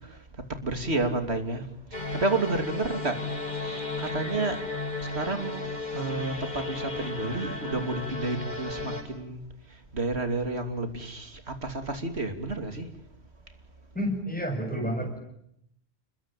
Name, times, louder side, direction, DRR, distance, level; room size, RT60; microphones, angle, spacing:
voice 1, 0.6-3.2 3.4-4.6 5.0-9.4 9.9-12.9, right 2 dB, 90° right, 7 dB, 3.1 m, -31 dB
sound 1, 1.9-9.0, left 3 dB, 50° left, 5.4 m, -34 dB
voice 2, 13.9-15.2, equal, 10° left, 3 dB, 7.2 m, -30 dB
30.0 x 22.0 x 9.0 m, 0.75 s
omnidirectional pair, 1.1 m